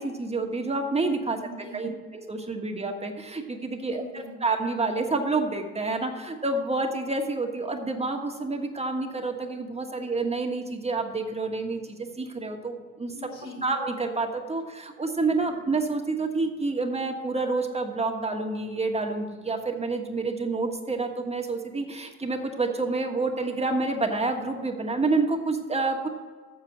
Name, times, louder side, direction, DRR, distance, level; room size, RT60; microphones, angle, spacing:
voice 1, 0.0-1.4 1.7-13.1 13.6-26.1, right 3 dB, 20° right, 3 dB, 1.4 m, -28 dB
voice 2, 1.4-1.9 3.9-4.4 13.1-13.7 15.4-15.6, left 1 dB, 75° left, 0 dB, 2.8 m, -42 dB
7.2 x 7.2 x 7.4 m, 1.5 s
supercardioid pair, 75°, 30 cm